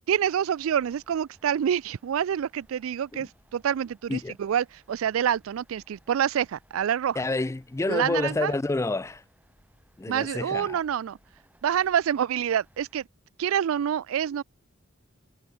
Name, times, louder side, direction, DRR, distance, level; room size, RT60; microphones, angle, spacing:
voice 1, 0.1-7.2 7.9-8.5 10.1-11.2 11.6-13.0 13.4-14.4, right 9 dB, 80° right, 0.3 m, -27 dB
sound 1, 0.6-13.1, equal, 10° right, 7.4 m, -63 dB
voice 2, 7.2-9.2 10.0-10.8, left 2 dB, 15° left, 0.3 m, -28 dB
head